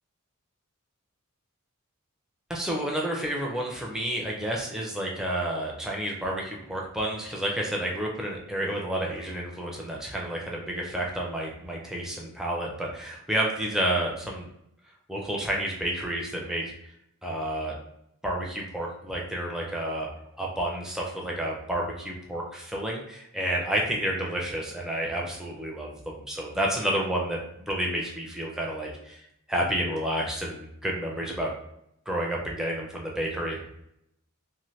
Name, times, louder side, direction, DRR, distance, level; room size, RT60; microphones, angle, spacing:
voice 1, 2.5-14.5 15.1-16.6 17.2-17.7 18.2-20.1 20.4-27.4 27.7-29.2 29.5-31.5 32.1-33.6, right 1 dB, ahead, -2 dB, 0.4 m, -30 dB
2.7 x 2.5 x 3.1 m, 0.78 s
head